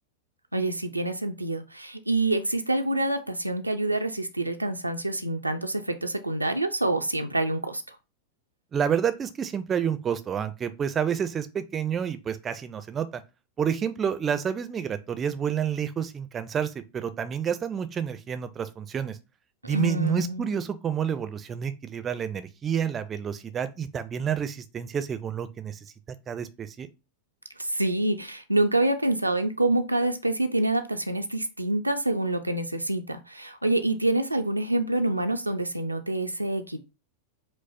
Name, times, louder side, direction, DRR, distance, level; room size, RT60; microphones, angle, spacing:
voice 1, 0.5-8.0 19.6-20.5 27.6-36.8, right 2 dB, 85° right, 0.4 m, -27 dB
voice 2, 8.7-13.2 13.6-19.2 19.6-25.8 26.3-26.9, right 8 dB, 25° right, 0.4 m, -29 dB
4.9 x 2.0 x 4.1 m
figure-of-eight pair, 90°, 0 cm